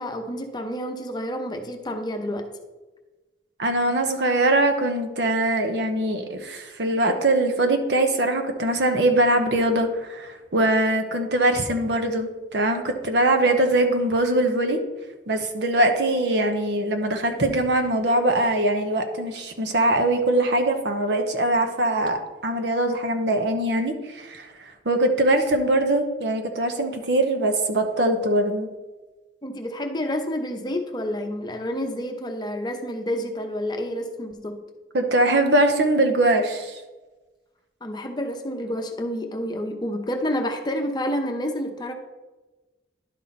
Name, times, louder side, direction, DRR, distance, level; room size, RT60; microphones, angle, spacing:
voice 1, 0.0-2.5 29.4-34.6 37.8-41.9, equal, 25° left, 5 dB, 0.7 m, -29 dB
voice 2, 3.6-14.8 15.3-28.7 34.9-36.8, right 1 dB, 75° right, 5 dB, 0.9 m, -22 dB
11.0 x 4.4 x 4.1 m, 1.2 s
head